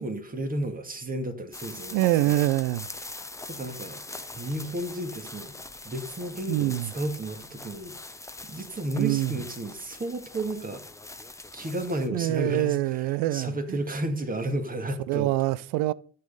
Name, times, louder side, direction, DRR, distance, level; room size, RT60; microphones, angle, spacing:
voice 1, 0.0-2.4 3.5-4.0 4.3-5.5 5.8-8.1 8.4-10.8 11.5-15.3, right 1 dB, 20° right, 2.1 m, -32 dB
sound 1, 1.5-12.1, left 2 dB, 5° left, 0.9 m, -42 dB
voice 2, 1.9-2.9 6.5-6.9 9.0-9.4 12.1-13.8 15.1-15.9, right 16 dB, 60° right, 0.6 m, -25 dB
12.5 x 6.8 x 5.3 m
hypercardioid pair, 60°, 40 cm